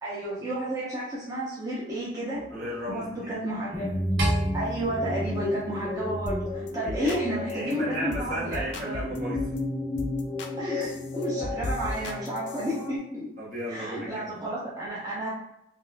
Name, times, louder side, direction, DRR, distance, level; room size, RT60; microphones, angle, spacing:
voice 1, 0.0-2.4 2.9-3.9 4.5-9.1 10.6-13.3 13.7-15.3, right 1 dB, 20° right, -8 dB, 0.7 m, -32 dB
sound 1, 2.4-13.0, left 1 dB, 20° left, 0.6 m, -33 dB
voice 2, 2.5-3.3 6.8-7.2 7.5-9.6 13.4-14.2, equal, 50° right, -7 dB, 1.3 m, -34 dB
sound 2, 4.2-6.6, equal, 65° right, 0.8 m, -32 dB
sound 3, 6.3-6.4 6.7-7.2 7.5-7.7 8.1-8.3 8.5-9.6 10.0-10.5 10.8-12.8, left 2 dB, 70° left, 0.4 m, -36 dB
4.1 x 2.6 x 2.2 m, 0.81 s
head